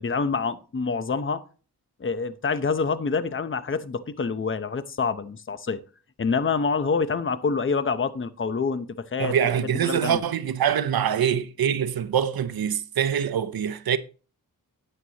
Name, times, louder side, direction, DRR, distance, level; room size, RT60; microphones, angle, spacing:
voice 1, 0.0-1.4 2.0-5.8 6.2-10.2, left 5 dB, 35° left, 0.8 m, -27 dB
voice 2, 9.2-14.0, right 8 dB, 70° right, 0.8 m, -24 dB
11.0 x 8.9 x 2.9 m
wide cardioid pair, 90°, 37 cm